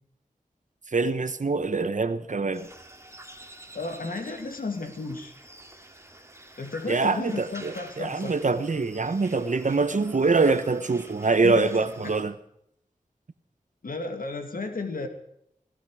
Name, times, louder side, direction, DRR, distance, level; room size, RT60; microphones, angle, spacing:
voice 1, 0.9-2.7 6.9-12.3, right 3 dB, 60° right, 1.0 m, -24 dB
sound 1, 2.5-12.2, right 1 dB, 20° right, 2.4 m, -48 dB
voice 2, 3.7-5.3 6.6-8.3 11.4-11.6 12.0-12.1 13.8-15.1, left 3 dB, 75° left, 2.3 m, -33 dB
17.5 x 15.5 x 4.9 m
wide cardioid pair, 60°, 15 cm